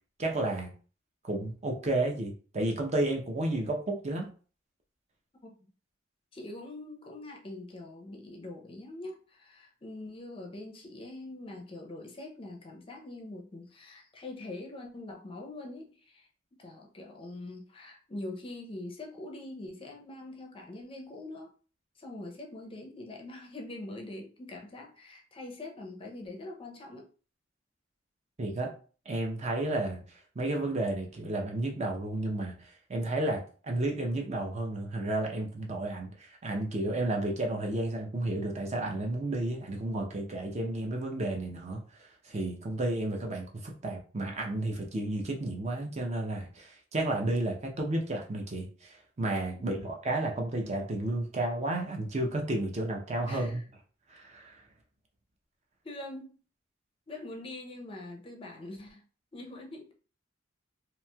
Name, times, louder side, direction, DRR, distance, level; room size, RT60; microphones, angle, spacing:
voice 1, 0.2-0.7 1.3-4.3 28.4-28.7 29.1-53.6 54.1-54.6, right 2 dB, 35° right, 1 dB, 0.5 m, -32 dB
voice 2, 6.3-16.3 16.6-21.5 22.0-27.0 49.5-49.8 53.3-53.6 55.8-56.4 57.1-59.0 59.3-59.9, left 2 dB, 25° left, 1 dB, 0.5 m, -43 dB
3.0 x 2.7 x 2.2 m, 0.39 s
head